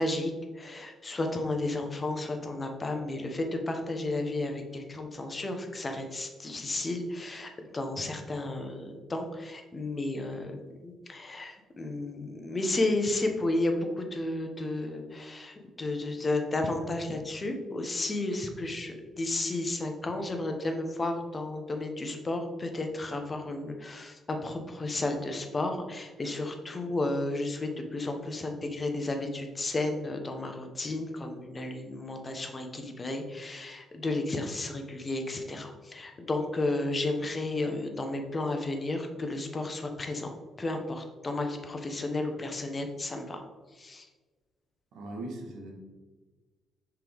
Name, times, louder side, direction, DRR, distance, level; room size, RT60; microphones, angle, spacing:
voice 1, 0.0-10.5 10.8-43.4 43.7-44.1, left 2 dB, 30° left, 4 dB, 1.0 m, -33 dB
voice 2, 44.9-45.7, right 2 dB, 80° right, 1 dB, 1.3 m, -39 dB
5.9 x 4.5 x 3.5 m, 1.3 s
cardioid pair, 90°, 0 cm